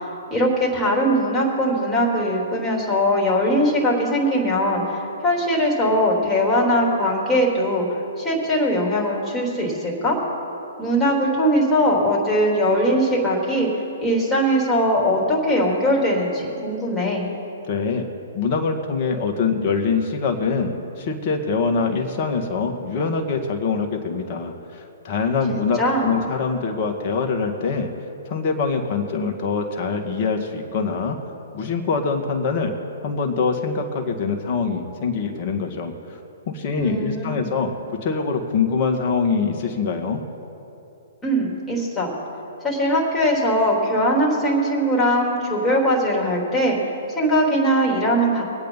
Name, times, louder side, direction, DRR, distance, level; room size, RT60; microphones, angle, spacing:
voice 1, 0.3-7.9 8.2-10.2 10.8-13.7 14.0-17.3 25.5-26.1 36.7-37.5 41.2-42.1 42.6-46.8 47.2-48.4, equal, 15° left, -3 dB, 3.8 m, -20 dB
voice 2, 17.7-18.1 18.3-27.9 28.3-31.2 31.5-32.7 33.0-35.9 36.5-37.7 38.0-40.2, left 5 dB, 45° left, 3 dB, 1.9 m, -24 dB
23.5 x 8.8 x 4.2 m, 2.9 s
hypercardioid pair, 125°, 0 cm